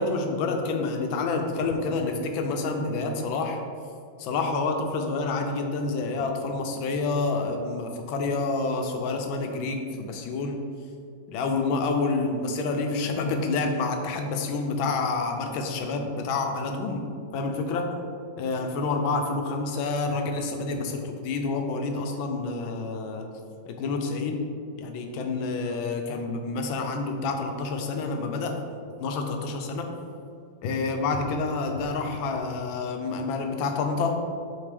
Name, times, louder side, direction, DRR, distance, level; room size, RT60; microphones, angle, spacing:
voice 1, 0.0-3.6 4.2-10.6 11.3-17.1 17.3-17.9 18.4-23.3 23.7-24.4 24.8-28.5 29.0-29.9 30.6-34.1, left 3 dB, 85° left, 4 dB, 1.4 m, -28 dB
7.8 x 3.6 x 3.3 m, 2.4 s
omnidirectional pair, 2.1 m